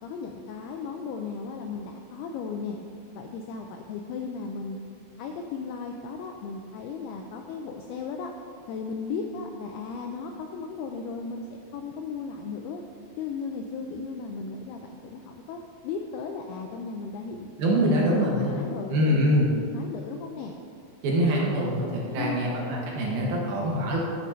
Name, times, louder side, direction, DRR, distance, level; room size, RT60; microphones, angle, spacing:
voice 1, 0.0-2.8 3.2-4.8 5.2-8.3 8.7-12.8 13.2-17.5 17.8-20.5 22.1-22.5, left 5 dB, 85° left, 3 dB, 2.2 m, -35 dB
voice 2, 17.6-18.5 18.9-19.5 21.0-24.0, equal, 65° right, -2 dB, 2.8 m, -24 dB
8.3 x 7.7 x 5.6 m, 2.5 s
omnidirectional pair, 5.1 m